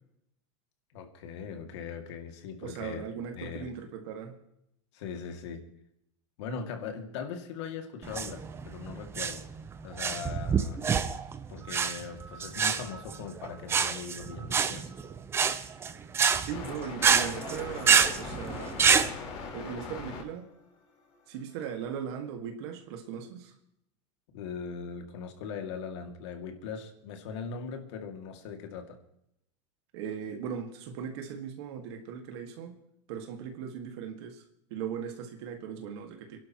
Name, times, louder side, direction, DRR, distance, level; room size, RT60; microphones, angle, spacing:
voice 1, 0.9-3.1 3.3-3.7 4.9-5.6 6.4-9.4 9.8-10.8 11.5-14.9 24.3-29.0, left 6 dB, 70° left, 5 dB, 2.5 m, -40 dB
voice 2, 2.6-4.4 16.4-19.0 19.5-20.5 21.3-23.5 29.9-32.8 33.1-34.4 34.7-36.4, right 7 dB, 65° right, 5 dB, 2.0 m, -38 dB
sound 1, 8.0-19.1, right 6 dB, 15° right, 0.7 m, -27 dB
sound 2, 16.5-20.2 20.5-22.0, left 4 dB, 40° left, 4.4 m, -40 dB
27.5 x 11.5 x 3.1 m, 0.78 s
supercardioid pair, 160°, 15 cm